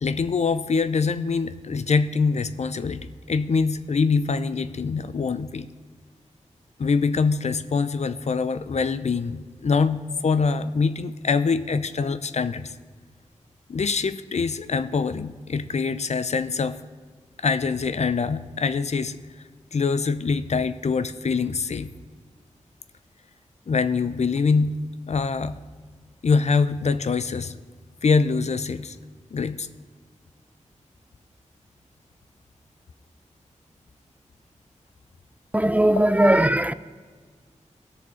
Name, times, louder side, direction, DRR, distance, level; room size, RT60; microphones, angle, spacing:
voice 1, 0.0-5.7 6.8-12.7 13.7-16.8 17.4-19.2 19.7-21.9 23.7-24.8 25.1-25.6 26.2-27.5 28.0-29.0 29.3-29.7, left 4 dB, 60° left, 0.6 m, -24 dB
voice 2, 35.5-36.7, right 1 dB, 10° right, 0.4 m, -19 dB
17.0 x 6.7 x 4.9 m
cardioid pair, 55°, 13 cm